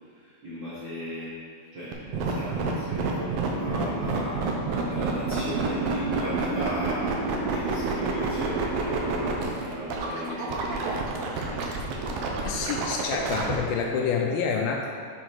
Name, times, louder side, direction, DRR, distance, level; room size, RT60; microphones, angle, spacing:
voice 1, 0.1-1.3 1.7-4.5 4.8-7.1 7.5-12.1, right 1 dB, 65° right, -11 dB, 1.1 m, -35 dB
sound 1, 1.9-13.6, right 4 dB, 90° right, 1.7 m, -29 dB
voice 2, 12.4-14.9, left 5 dB, 80° left, 2 dB, 2.2 m, -27 dB
7.8 x 4.1 x 4.6 m, 2.2 s
omnidirectional pair, 4.5 m